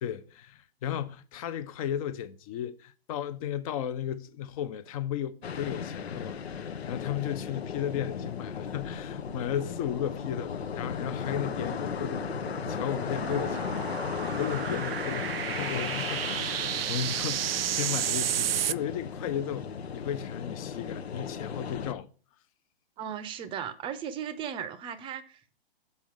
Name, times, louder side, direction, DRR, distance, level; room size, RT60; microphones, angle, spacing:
voice 1, 0.0-22.1, left 10 dB, 35° left, 0.7 m, -35 dB
sound 1, 5.4-21.9, left 6 dB, 85° left, 0.8 m, -36 dB
sound 2, 11.2-18.7, right 11 dB, 70° right, 0.5 m, -33 dB
voice 2, 13.1-13.8 23.0-25.6, right 8 dB, 15° right, 0.7 m, -37 dB
7.0 x 5.3 x 6.0 m
hypercardioid pair, 130°, 31 cm